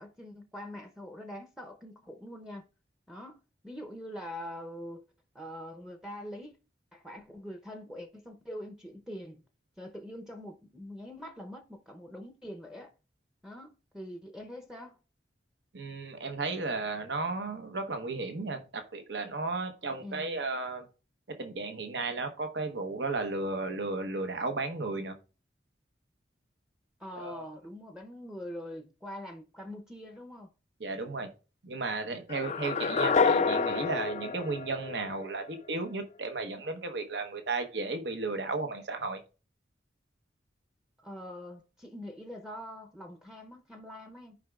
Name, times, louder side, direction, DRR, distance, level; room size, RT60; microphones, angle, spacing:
voice 1, 0.0-2.6 3.1-3.4 3.6-5.0 5.3-6.5 6.9-9.4 9.8-12.9 13.4-15.0 20.0-20.4 27.0-30.5 41.0-44.4, equal, 5° right, 0.7 m, -44 dB
voice 2, 15.7-20.9 21.3-25.1 27.1-27.5 30.8-31.3 31.6-39.2, right 3 dB, 70° right, 1.0 m, -34 dB
sound 1, 32.3-35.4, left 5 dB, 40° left, 0.4 m, -28 dB
14.5 x 4.9 x 2.3 m
head